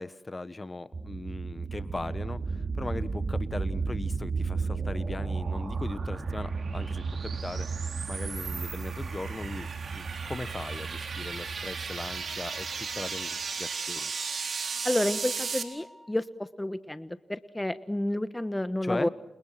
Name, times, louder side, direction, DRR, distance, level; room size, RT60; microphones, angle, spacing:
voice 1, 0.0-7.7 8.1-9.7 9.9-14.1 18.8-19.1, left 2 dB, 30° left, 14 dB, 1.5 m, -38 dB
sound 1, 0.9-13.3, right 4 dB, 50° right, 4.3 m, -34 dB
sound 2, 4.1-15.6, right 5 dB, 65° right, 4.2 m, -37 dB
Wind instrument woodwind instrument, 12.0-16.3, equal, 25° right, 4.8 m, -52 dB
voice 2, 14.8-16.3 16.6-19.1, left 1 dB, 15° left, 12 dB, 1.3 m, -30 dB
30.0 x 29.0 x 6.0 m, 0.92 s
cardioid pair, 50°, 0 cm